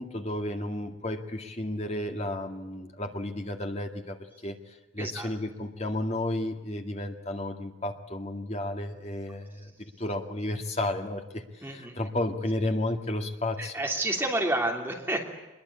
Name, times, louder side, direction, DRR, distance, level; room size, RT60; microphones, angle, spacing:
voice 1, 0.0-4.2 4.4-13.7, left 1 dB, 35° left, 5 dB, 2.1 m, -32 dB
voice 2, 5.0-5.3 11.6-12.0 13.6-15.2, right 1 dB, 10° right, 1 dB, 3.0 m, -29 dB
24.5 x 22.0 x 8.5 m, 1.1 s
head